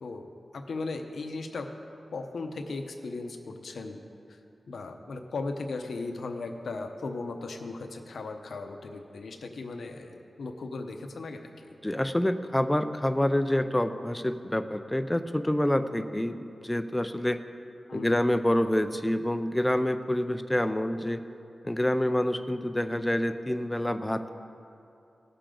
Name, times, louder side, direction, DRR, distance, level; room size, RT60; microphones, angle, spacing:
voice 1, 0.0-1.7 2.1-4.0 4.3-4.4 4.7-11.5 17.9-18.2, left 3 dB, 85° left, 5 dB, 0.8 m, -37 dB
voice 2, 11.8-17.4 17.9-21.2 21.6-24.3, left 1 dB, 10° left, 9 dB, 0.5 m, -27 dB
18.0 x 6.8 x 3.8 m, 2.7 s
wide cardioid pair, 110°, 0 cm